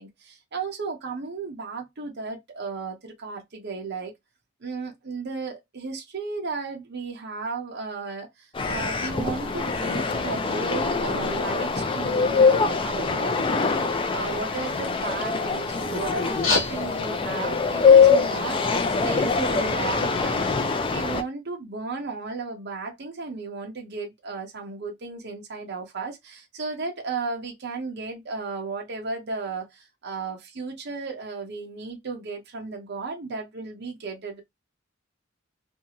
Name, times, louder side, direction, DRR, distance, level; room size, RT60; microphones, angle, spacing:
voice 1, 0.0-4.1 4.6-18.6 19.0-34.4, right 4 dB, 55° right, 0.7 m, -34 dB
sound 1, 8.5-21.2, left 5 dB, 25° left, 0.4 m, -23 dB
sound 2, 16.2-21.2, left 3 dB, 70° left, 1.0 m, -33 dB
2.6 x 2.4 x 2.8 m
head